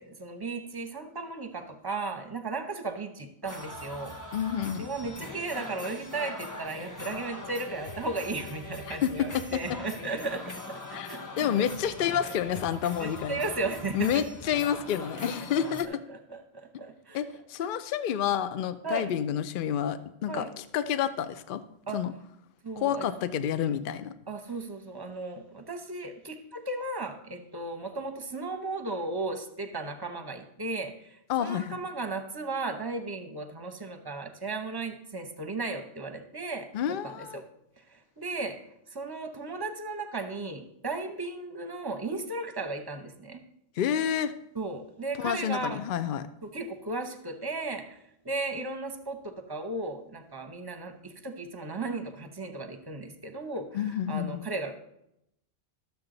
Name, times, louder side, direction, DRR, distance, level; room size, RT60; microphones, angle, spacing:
voice 1, 0.0-4.2 4.8-11.7 13.0-14.2 15.6-17.2 17.6-17.7 18.8-19.1 20.3-20.5 21.9-22.0 22.6-23.1 24.3-37.4 37.8-38.6 38.9-43.4 44.5-45.8 46.4-48.0 48.2-54.8, right 3 dB, 25° right, 7 dB, 0.8 m, -35 dB
sound 1, 3.4-15.8, left 2 dB, 20° left, 0.7 m, -41 dB
voice 2, 4.3-4.9 8.9-9.1 10.9-11.1 11.4-13.4 13.9-16.0 17.1-21.6 21.9-22.1 22.8-24.1 31.3-31.8 36.7-37.4 43.8-44.3 45.2-46.3 53.7-54.5, left 9 dB, 60° left, 12 dB, 0.7 m, -29 dB
12.0 x 7.1 x 3.9 m, 0.81 s
omnidirectional pair, 1.1 m